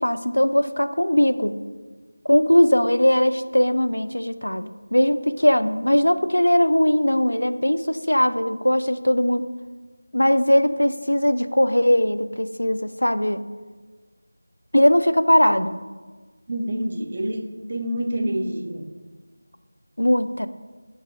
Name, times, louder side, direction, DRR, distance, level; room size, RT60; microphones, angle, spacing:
voice 1, 0.0-1.6 2.3-9.4 10.1-13.4 14.7-15.8 20.0-20.5, left 1 dB, 85° left, 12 dB, 0.3 m, -20 dB
voice 2, 16.5-18.9, right 1 dB, 35° right, 3 dB, 0.6 m, -27 dB
7.1 x 3.9 x 3.8 m, 1.4 s
figure-of-eight pair, 170°, 0 cm